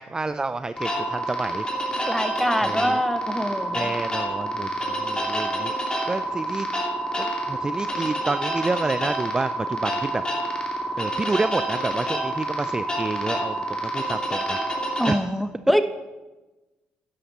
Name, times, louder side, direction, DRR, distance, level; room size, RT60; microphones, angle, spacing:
voice 1, 0.0-1.6 2.6-3.0 3.7-6.7 7.2-10.2 11.0-14.6 15.0-15.2, right 3 dB, 20° right, 12 dB, 0.4 m, -29 dB
sound 1, 0.8-15.1, right 1 dB, 20° left, 2.8 m, -28 dB
voice 2, 2.1-3.9 15.0-15.8, equal, ahead, 10 dB, 1.0 m, -24 dB
11.5 x 9.9 x 4.2 m, 1.1 s
supercardioid pair, 60°, 4 cm